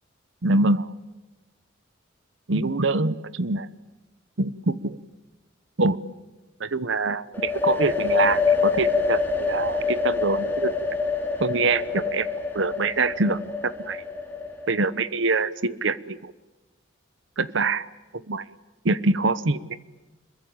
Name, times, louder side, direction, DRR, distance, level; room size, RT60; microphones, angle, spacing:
voice 1, 0.4-0.9 2.5-3.7 4.4-5.0 5.8-6.0 6.6-10.8 11.4-12.3 12.5-14.0 14.7-16.3 17.4-17.9 18.1-18.4 18.8-19.7, right 3 dB, 65° right, 16 dB, 1.0 m, -24 dB
sound 1, 7.3-15.0, left 5 dB, 10° left, 3.4 m, -26 dB
27.0 x 22.5 x 8.8 m, 1.1 s
head